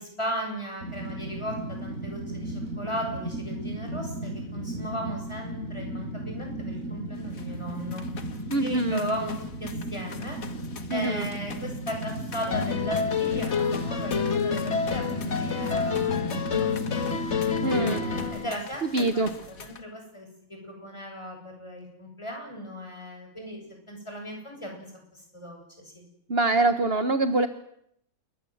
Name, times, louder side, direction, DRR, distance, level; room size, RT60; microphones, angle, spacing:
voice 1, 0.0-8.0 8.6-9.3 9.6-10.4 10.9-17.1 17.6-23.6 23.9-24.8 25.1-26.0, equal, 20° left, 2 dB, 8.1 m, -37 dB
Fire, 0.8-18.2, right 1 dB, 70° right, 6.9 m, -36 dB
sound 1, 7.1-19.8, left 6 dB, 80° left, 2.1 m, -45 dB
voice 2, 8.5-9.0 10.9-11.3 17.6-18.0 18.8-19.3 26.3-27.5, right 2 dB, 45° right, 10 dB, 1.4 m, -24 dB
sound 2, 12.5-18.5, left 6 dB, 55° left, 1.8 m, -28 dB
29.0 x 22.5 x 8.0 m, 0.74 s
omnidirectional pair, 1.4 m